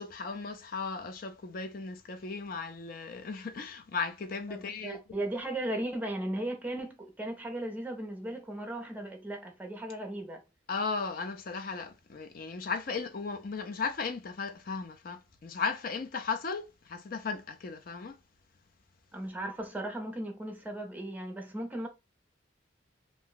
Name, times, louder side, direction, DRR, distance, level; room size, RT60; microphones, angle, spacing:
voice 1, 0.0-5.0 10.7-18.2, left 4 dB, 45° left, 0.4 m, -36 dB
voice 2, 4.5-10.4 19.1-21.9, right 1 dB, 10° right, 0.6 m, -36 dB
2.5 x 2.2 x 3.6 m
head